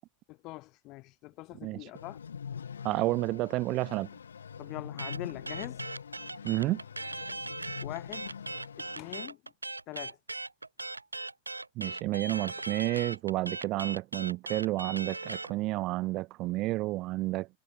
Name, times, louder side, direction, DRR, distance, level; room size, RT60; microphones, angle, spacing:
voice 1, 0.3-2.2 4.6-5.8 7.3-7.5 7.8-8.3 8.8-9.5 9.9-10.2, left 21 dB, 40° left, 1.5 m, -43 dB
sound 1, 1.9-9.2, left 7 dB, 70° left, 1.4 m, -44 dB
voice 2, 2.8-4.1 6.4-6.8 11.8-17.5, right 19 dB, 40° right, 0.4 m, -30 dB
sound 2, 5.0-15.5, right 2 dB, 80° right, 0.8 m, -39 dB
figure-of-eight pair, 90°, 0 cm